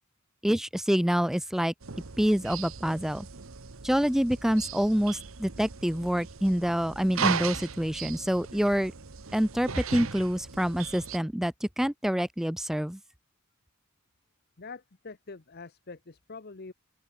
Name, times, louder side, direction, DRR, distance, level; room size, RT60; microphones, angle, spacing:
voice 1, 0.4-1.7 2.2-3.3 3.8-8.9 9.3-13.0, equal, ahead, 0.3 m, -26 dB
sound 1, 1.8-11.2, right 6 dB, 80° right, 1.2 m, -37 dB
voice 2, 14.6-16.7, left 4 dB, 50° left, 1.0 m, -44 dB
open air
head